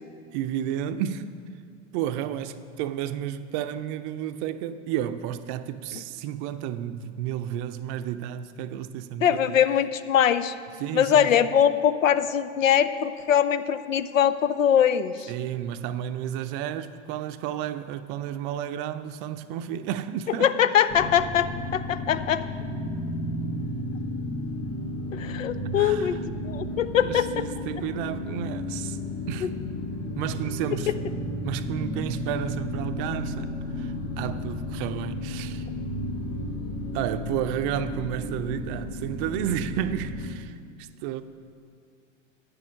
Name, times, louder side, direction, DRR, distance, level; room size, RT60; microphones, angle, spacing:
voice 1, 0.3-1.2 1.9-9.4 10.8-11.3 15.3-20.5 25.7-26.2 27.0-29.0 29.3-29.5 30.2-30.9 31.4-35.7 36.9-41.2, right 10 dB, 45° right, 0.5 m, -32 dB
voice 2, 9.2-10.5 10.9-15.3 20.4-22.4 25.1-27.4, left 9 dB, 90° left, 0.5 m, -22 dB
sound 1, 20.9-40.3, left 1 dB, 25° left, 2.3 m, -33 dB
9.1 x 6.3 x 6.4 m
hypercardioid pair, 90°, 38 cm